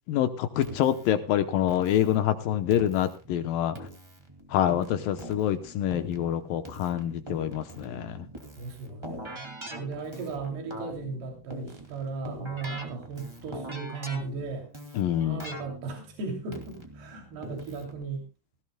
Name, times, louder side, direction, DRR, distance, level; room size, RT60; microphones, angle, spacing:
voice 1, 0.1-3.8 4.5-8.3 15.0-15.4, left 11 dB, 75° left, 9 dB, 2.3 m, -26 dB
Keyboard (musical), 0.6-18.0, right 1 dB, 10° right, 1.3 m, -43 dB
voice 2, 8.6-14.7 15.2-18.3, right 4 dB, 80° right, 1 dB, 4.7 m, -36 dB
18.5 x 16.0 x 2.2 m, 0.30 s
omnidirectional pair, 4.6 m